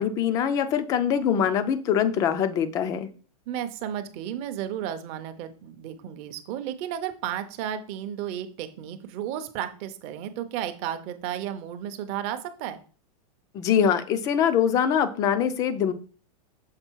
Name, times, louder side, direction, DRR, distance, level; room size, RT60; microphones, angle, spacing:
voice 1, 0.0-3.1 13.5-15.9, left 8 dB, 20° left, 13 dB, 0.3 m, -23 dB
voice 2, 3.5-12.8, right 10 dB, 30° right, 9 dB, 0.6 m, -33 dB
6.7 x 3.8 x 4.5 m, 0.40 s
supercardioid pair, 165°, 19 cm